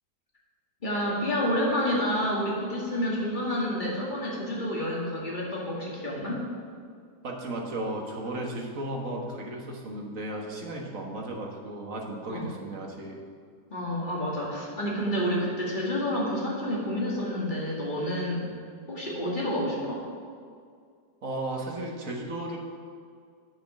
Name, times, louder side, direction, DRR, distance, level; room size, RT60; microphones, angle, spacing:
voice 1, 0.8-6.5 12.3-12.5 13.7-18.5 18.9-20.1, equal, 25° left, -4 dB, 2.3 m, -29 dB
voice 2, 7.2-13.2 21.2-22.6, right 1 dB, 50° right, 0 dB, 1.7 m, -35 dB
8.7 x 7.4 x 6.3 m, 2.2 s
omnidirectional pair, 1.9 m